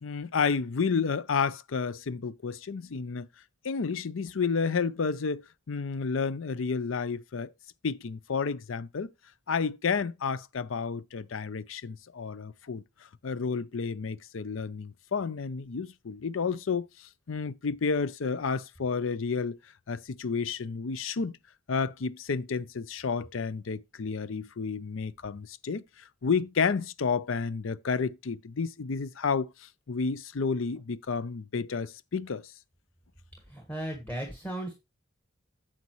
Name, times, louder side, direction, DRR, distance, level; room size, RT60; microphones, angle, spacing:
voice 1, 0.0-3.3 3.6-7.5 7.8-9.1 9.5-12.8 13.2-19.6 19.9-21.4 21.7-32.5, left 5 dB, 75° left, 0.6 m, -31 dB
voice 2, 33.5-34.7, right 1 dB, 10° left, 1.5 m, -36 dB
9.5 x 7.3 x 3.1 m
head